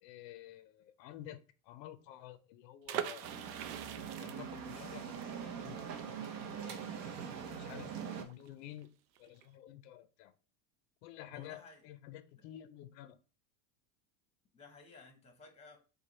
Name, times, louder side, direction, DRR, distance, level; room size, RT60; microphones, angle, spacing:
voice 1, 0.0-3.3 4.2-6.8 7.3-7.9 8.2-8.9 9.2-10.3 11.0-13.2, left 12 dB, 85° left, 0.7 m, -51 dB
sound 1, 2.9-8.5 8.8-8.9 9.2-9.5, right 10 dB, 70° right, 0.6 m, -43 dB
sound 2, 3.2-8.2, right 7 dB, 45° right, 0.8 m, -43 dB
voice 2, 11.3-11.9 12.4-12.5 14.5-15.8, left 3 dB, 15° left, 0.9 m, -56 dB
4.9 x 2.3 x 4.1 m
cardioid pair, 155°, 48 cm